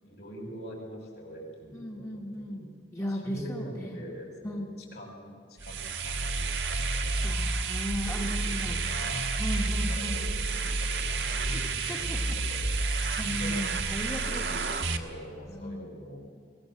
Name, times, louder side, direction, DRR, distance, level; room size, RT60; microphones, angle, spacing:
voice 1, 0.0-2.6 3.1-4.6 4.9-7.2 8.0-16.2, equal, 65° left, 0 dB, 6.3 m, -44 dB
voice 2, 1.7-4.0 4.4-4.7 7.2-8.8 9.4-10.2 11.2-11.6 11.9-12.7 13.2-14.4 15.5-15.9, equal, 15° left, -1 dB, 1.4 m, -36 dB
sound 1, 5.6-15.0, right 3 dB, 75° right, 1.5 m, -30 dB
21.5 x 19.5 x 7.7 m, 2.1 s
head